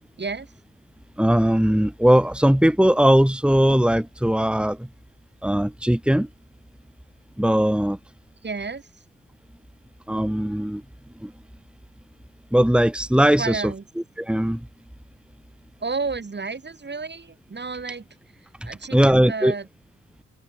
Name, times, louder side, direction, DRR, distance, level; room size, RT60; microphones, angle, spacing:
voice 1, 0.2-0.5 8.4-9.0 13.4-13.8 15.8-18.1 18.4-19.7, right 4 dB, 35° right, 4.6 m, -31 dB
voice 2, 1.2-4.9 5.4-6.3 7.4-8.0 10.1-10.8 11.2-11.3 12.5-13.6 14.2-14.7 18.6-19.5, equal, 5° right, 2.8 m, -19 dB
open air
cardioid pair, 85°, 30 cm